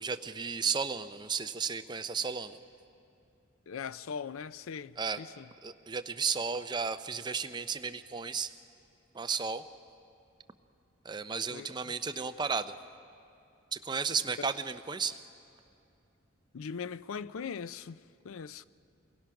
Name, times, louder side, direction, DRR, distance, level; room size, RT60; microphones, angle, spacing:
voice 1, 0.0-2.6 5.0-5.2 5.6-8.5 9.1-9.6 11.0-12.7 13.7-15.1, right 5 dB, 20° right, 0.5 m, -33 dB
voice 2, 3.7-5.5 11.5-11.9 14.4-14.5 16.5-18.7, left 6 dB, 90° left, 0.5 m, -40 dB
29.0 x 22.0 x 5.8 m
head